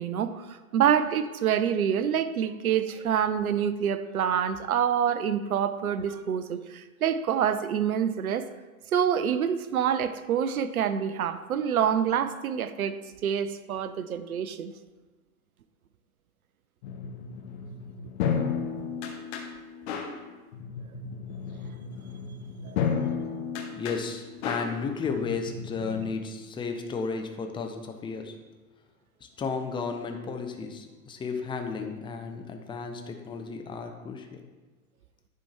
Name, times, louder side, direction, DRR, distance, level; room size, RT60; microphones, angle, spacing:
voice 1, 0.0-8.5 8.9-14.7 22.6-22.8, right 8 dB, 75° right, 12 dB, 0.7 m, -27 dB
sound 1, 16.8-26.1, left 6 dB, 45° left, 1.1 m, -33 dB
voice 2, 23.7-28.4 29.2-34.4, left 5 dB, 10° left, 4 dB, 0.6 m, -33 dB
10.5 x 4.5 x 4.6 m, 1.3 s
figure-of-eight pair, 105°, 44 cm